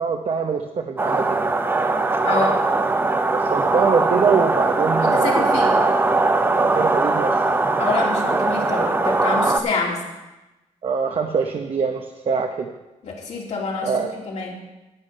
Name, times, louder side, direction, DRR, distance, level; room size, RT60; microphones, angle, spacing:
voice 1, 0.0-1.5 3.3-5.7 6.6-7.4 10.8-12.7 13.8-14.1, right 5 dB, 50° right, 4 dB, 0.8 m, -24 dB
sound 1, 1.0-9.6, right 3 dB, 15° right, 0.7 m, -20 dB
voice 2, 2.2-2.6 5.0-5.8 7.8-10.0 13.0-13.9 14.3-14.6, left 4 dB, 65° left, -3 dB, 3.0 m, -26 dB
11.0 x 9.0 x 5.5 m, 1.0 s
cardioid pair, 125°, 13 cm